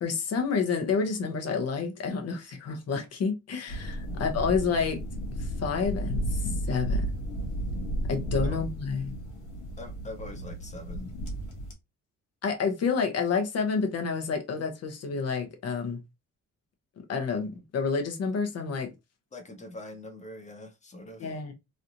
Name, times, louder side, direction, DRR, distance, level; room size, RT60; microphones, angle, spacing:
voice 1, 0.0-5.0 5.4-7.1 8.1-9.1 12.4-16.0 17.1-18.9 21.2-21.5, left 5 dB, 55° left, 0.9 m, -29 dB
sound 1, 3.7-11.7, right 1 dB, 80° left, 1.2 m, -33 dB
voice 2, 9.8-11.1 19.3-21.3, left 1 dB, 25° left, 0.7 m, -43 dB
3.2 x 2.6 x 2.7 m
cardioid pair, 150°, 30 cm